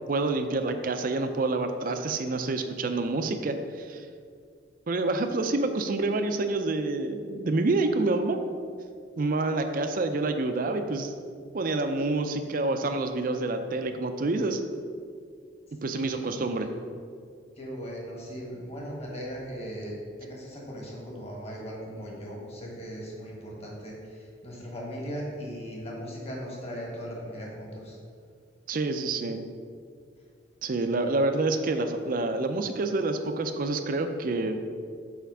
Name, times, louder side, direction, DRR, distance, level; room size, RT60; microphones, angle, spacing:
voice 1, 0.1-4.1 4.9-8.4 9.2-11.1 11.5-14.6 15.8-16.7 28.7-29.4 30.6-34.6, right 2 dB, 50° right, 7 dB, 0.5 m, -27 dB
voice 2, 15.9-16.5 17.6-19.9 20.2-28.0, equal, 35° left, -3 dB, 1.6 m, -38 dB
5.7 x 4.4 x 6.1 m, 2.2 s
head